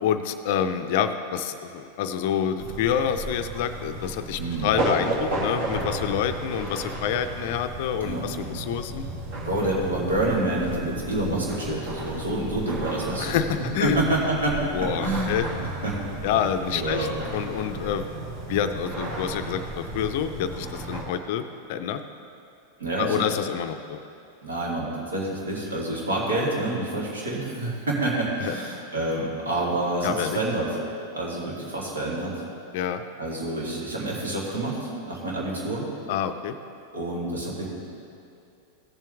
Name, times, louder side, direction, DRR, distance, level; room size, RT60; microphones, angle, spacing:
voice 1, 0.0-9.0 13.2-14.0 14.7-15.5 16.2-18.1 18.5-22.0 23.0-24.0 28.4-28.6 30.0-30.4 32.7-33.0 36.1-36.6, left 9 dB, 50° left, 9 dB, 0.4 m, -27 dB
sound 1, 2.6-21.0, right 1 dB, 50° right, 2.2 m, -33 dB
voice 2, 4.4-4.7 8.0-8.2 9.4-13.4 13.8-15.3 15.8-16.0 16.7-17.1 22.8-23.2 24.4-30.7 31.1-32.3 33.2-35.9 36.9-37.7, right 2 dB, 70° right, -4 dB, 2.6 m, -27 dB
16.0 x 7.4 x 3.4 m, 2.6 s
figure-of-eight pair, 90°, 0 cm